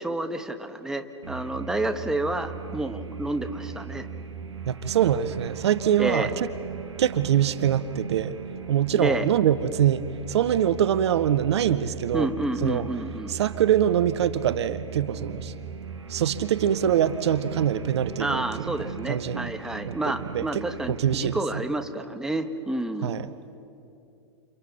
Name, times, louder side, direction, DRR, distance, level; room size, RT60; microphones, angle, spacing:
voice 1, 0.0-4.1 6.0-6.3 8.9-9.3 12.1-13.3 18.2-23.1, right 1 dB, 5° right, 6 dB, 1.3 m, -29 dB
sound 1, 1.2-21.2, right 6 dB, 85° right, 1.6 m, -38 dB
voice 2, 4.7-6.5 7.0-8.4 8.7-12.3 12.6-12.9 13.3-15.5 16.1-18.7 19.1-19.5 19.9-21.6 23.0-23.3, right 10 dB, 70° right, 14 dB, 0.8 m, -24 dB
29.5 x 29.0 x 4.2 m, 2.7 s
hypercardioid pair, 100°, 15 cm